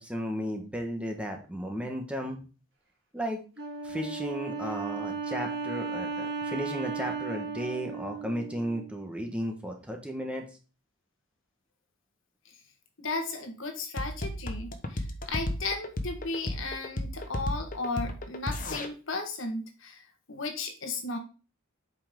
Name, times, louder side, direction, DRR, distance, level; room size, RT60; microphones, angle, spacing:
voice 1, 0.0-2.4 3.1-3.4 3.8-10.5, equal, 5° right, 2 dB, 1.3 m, -34 dB
Wind instrument woodwind instrument, 3.6-9.0, right 5 dB, 55° right, 2.8 m, -35 dB
voice 2, 13.0-20.0 20.3-21.2, left 3 dB, 70° left, 5 dB, 1.6 m, -35 dB
sound 1, 14.0-18.9, left 1 dB, 40° left, 1.0 m, -34 dB
7.9 x 5.6 x 3.8 m, 0.35 s
head